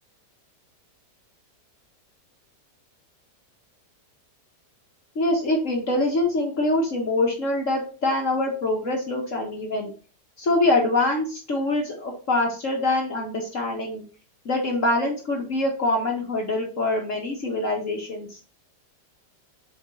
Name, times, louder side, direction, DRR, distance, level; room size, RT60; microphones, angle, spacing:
voice 1, 5.1-9.9 10.4-14.0 14.4-18.4, left 2 dB, 50° left, 0 dB, 1.6 m, -24 dB
5.0 x 4.4 x 5.5 m, 0.36 s
omnidirectional pair, 1.8 m